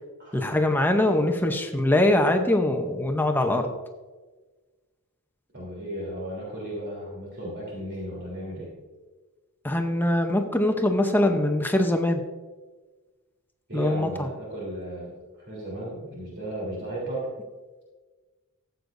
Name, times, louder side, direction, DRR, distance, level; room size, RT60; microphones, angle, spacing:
voice 1, 0.3-3.7 9.6-12.2 13.7-14.3, left 1 dB, 10° left, 4 dB, 0.7 m, -23 dB
voice 2, 5.5-8.7 13.7-17.3, right 1 dB, 50° right, -4 dB, 3.4 m, -35 dB
14.5 x 8.0 x 2.6 m, 1.3 s
head